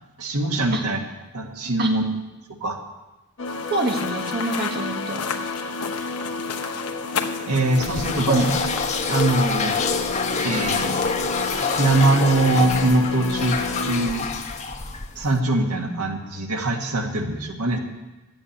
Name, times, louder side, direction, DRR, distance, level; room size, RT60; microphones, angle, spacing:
voice 1, 0.2-1.0 1.3-2.1 2.6-2.8 7.5-8.5 9.0-9.7 10.4-11.0 11.8-14.3 15.1-17.8, right 2 dB, 90° right, 3 dB, 1.6 m, -22 dB
sound 1, 3.4-14.1, left 3 dB, 60° left, 1.0 m, -31 dB
sound 2, 3.5-12.2, left 6 dB, 90° left, 1.0 m, -34 dB
voice 2, 3.7-5.3 8.1-8.5 15.8-16.0, right 2 dB, 45° right, 2 dB, 1.5 m, -26 dB
sound 3, 7.8-15.4, left 4 dB, 30° left, 0.9 m, -27 dB
11.5 x 8.9 x 8.5 m, 1.1 s
head